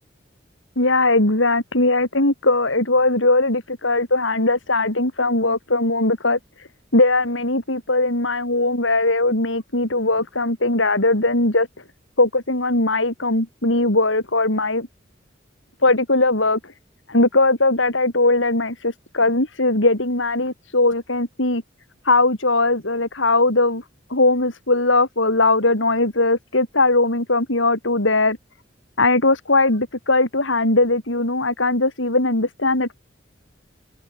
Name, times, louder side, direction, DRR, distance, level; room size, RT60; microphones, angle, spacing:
voice 1, 0.8-6.4 6.9-11.7 12.2-14.9 15.8-16.6 17.1-21.6 22.1-23.8 24.1-28.4 29.0-32.9, left 2 dB, 85° left, 5.3 m, -19 dB
open air
head